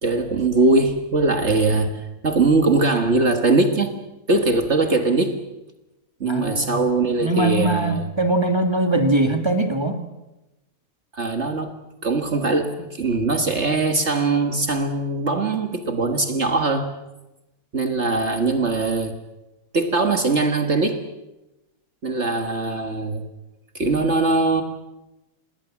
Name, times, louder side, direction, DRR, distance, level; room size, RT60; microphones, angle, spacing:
voice 1, 0.0-3.9 4.3-5.4 6.2-8.1 11.1-11.7 12.0-16.9 17.7-19.2 19.7-21.0 22.0-23.2 23.7-24.6, right 3 dB, 50° right, 7 dB, 1.9 m, -21 dB
voice 2, 6.2-6.8 7.2-10.0, right 2 dB, 20° right, 7 dB, 1.8 m, -21 dB
27.0 x 20.5 x 7.3 m, 0.98 s
omnidirectional pair, 1.5 m